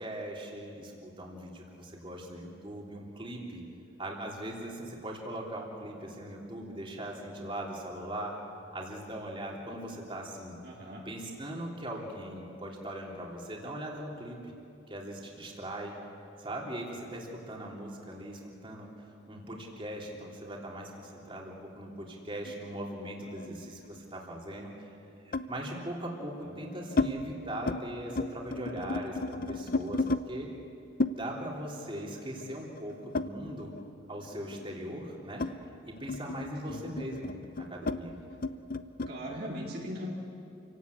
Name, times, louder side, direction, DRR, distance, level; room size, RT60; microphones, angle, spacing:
voice 1, 0.0-3.6 4.0-8.4 8.7-10.6 11.1-14.5 14.9-16.0 16.4-18.9 19.3-24.9 25.3-30.5 31.1-33.7 34.1-35.4 35.9-38.2, right 1 dB, 25° right, -2 dB, 3.4 m, -40 dB
voice 2, 10.6-11.0 26.5-26.6 36.7-36.9 39.1-40.1, equal, 50° right, -3 dB, 2.6 m, -39 dB
sound 1, 22.5-24.0 25.3-25.6 26.3-27.1 27.5-27.8 28.1-30.2 31.0-33.9 34.2-39.2, left 3 dB, 45° left, 0.7 m, -34 dB
28.5 x 17.5 x 8.5 m, 2.7 s
head